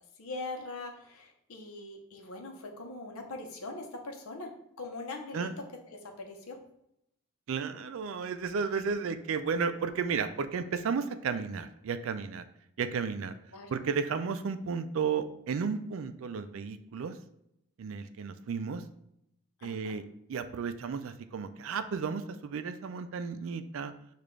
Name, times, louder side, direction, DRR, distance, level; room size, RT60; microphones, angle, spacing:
voice 1, 0.2-4.5 4.8-5.5 5.9-6.6 13.5-13.7 19.6-19.9, left 3 dB, 70° left, 2 dB, 0.8 m, -41 dB
voice 2, 7.5-12.4 12.8-13.3 13.7-17.2 17.8-18.8 19.6-20.0 20.3-23.9, right 5 dB, 60° right, 10 dB, 0.3 m, -33 dB
6.8 x 2.5 x 3.1 m, 0.78 s
head